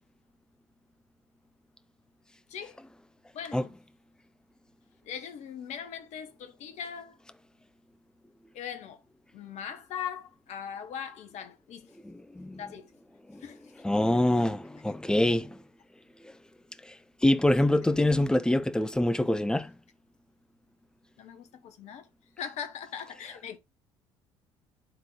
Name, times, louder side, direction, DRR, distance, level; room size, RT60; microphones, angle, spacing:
voice 1, 3.3-3.8 5.0-7.2 8.5-9.0 9.3-12.0 12.5-12.9 13.4-13.8 21.2-22.1 22.4-23.6, left 8 dB, 50° left, 1.0 m, -40 dB
voice 2, 12.0-12.6 13.3-13.4 13.8-15.6 16.9-17.0 17.2-19.7, left 1 dB, 5° left, 0.7 m, -25 dB
11.0 x 3.8 x 3.2 m
figure-of-eight pair, 55°, 15 cm